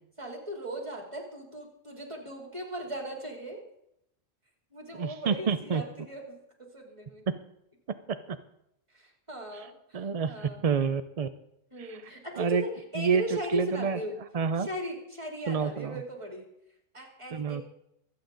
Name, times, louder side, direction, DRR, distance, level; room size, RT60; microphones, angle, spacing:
voice 1, 0.2-3.6 4.7-7.2 8.9-10.6 11.7-14.2 14.6-16.5 16.9-17.6, equal, 20° right, 1 dB, 3.1 m, -38 dB
voice 2, 4.9-5.8 7.3-7.4 7.9-8.4 9.5-9.7 9.9-11.3 11.8-12.1 12.4-12.6 13.0-14.0 14.3-14.7 15.5-16.0 17.3-17.6, right 6 dB, 50° right, 10 dB, 0.4 m, -29 dB
25.0 x 8.8 x 3.9 m, 0.81 s
omnidirectional pair, 1.3 m